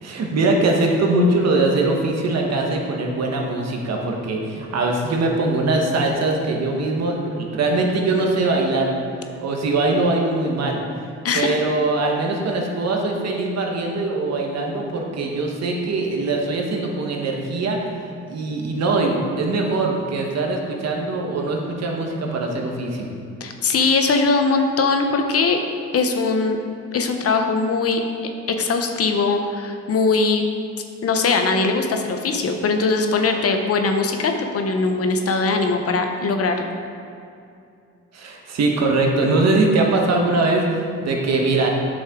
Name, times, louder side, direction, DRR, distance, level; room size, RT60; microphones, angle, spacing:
voice 1, 0.0-9.0 9.4-10.8 11.3-17.8 18.1-23.1 38.1-41.7, right 2 dB, 60° right, 1 dB, 1.3 m, -22 dB
voice 2, 11.2-11.6 23.4-25.6 25.9-26.6 26.9-28.0 28.5-30.5 31.0-36.6, left 4 dB, 50° left, 5 dB, 0.8 m, -20 dB
8.1 x 6.3 x 3.7 m, 2.5 s
cardioid pair, 90°, 30 cm